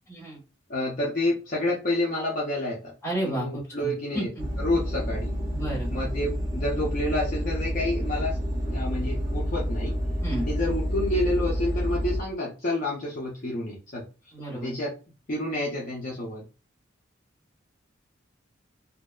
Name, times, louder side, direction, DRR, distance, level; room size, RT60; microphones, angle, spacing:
voice 1, 0.1-0.4 3.0-4.4 5.5-5.9 10.2-10.5 14.3-14.7, right 1 dB, 15° left, -6 dB, 1.4 m, -32 dB
voice 2, 0.7-2.9 3.2-4.3 4.6-5.4 5.9-9.9 10.4-14.0 14.5-14.9 15.3-16.4, left 1 dB, 45° left, -4 dB, 0.5 m, -29 dB
sound 1, 4.4-12.2, equal, 20° right, 0.6 m, -29 dB
2.6 x 2.1 x 2.3 m, 0.34 s
head